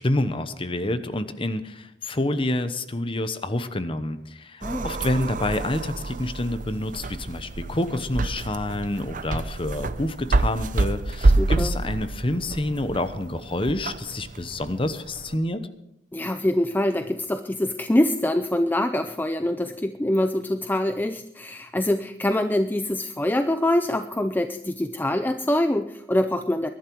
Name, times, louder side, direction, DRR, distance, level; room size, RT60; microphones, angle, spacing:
voice 1, 0.0-15.6, left 1 dB, 30° left, 11 dB, 1.0 m, -28 dB
voice 2, 4.6-4.9 11.4-11.7 16.1-26.7, left 1 dB, 10° left, 8 dB, 0.5 m, -24 dB
sound 1, 4.6-15.3, right 2 dB, 45° right, 0.6 m, -27 dB
21.5 x 11.5 x 4.7 m, 0.81 s
head